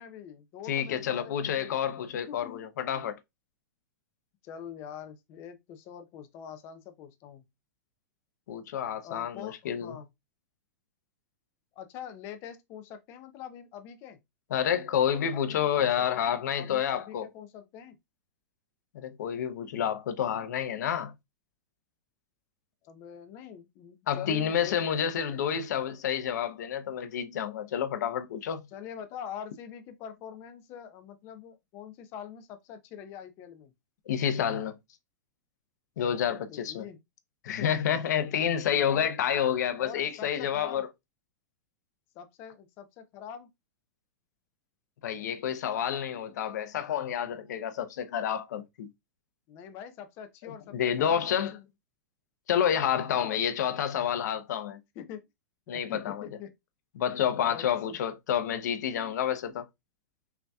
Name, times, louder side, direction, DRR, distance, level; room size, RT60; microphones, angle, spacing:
voice 1, 0.0-1.8 2.3-2.6 2.9-3.2 4.4-7.4 9.0-10.1 11.8-14.2 15.3-15.9 16.2-17.9 22.8-24.8 28.7-33.7 36.0-37.0 37.5-37.8 38.7-39.1 39.8-40.8 42.1-43.5 49.5-51.6 52.9-53.4 55.0-55.2 55.7-56.5 57.5-57.6, left 8 dB, 25° left, 0.6 m, -44 dB
voice 2, 0.7-3.2 8.5-10.0 14.5-17.2 18.9-21.1 24.1-28.6 34.1-34.8 36.0-36.8 37.4-40.9 45.0-48.9 50.4-51.5 52.5-54.8 55.7-56.3 57.0-59.6, left 9 dB, 65° left, 0.7 m, -29 dB
5.7 x 2.8 x 2.3 m
supercardioid pair, 175°, 10 cm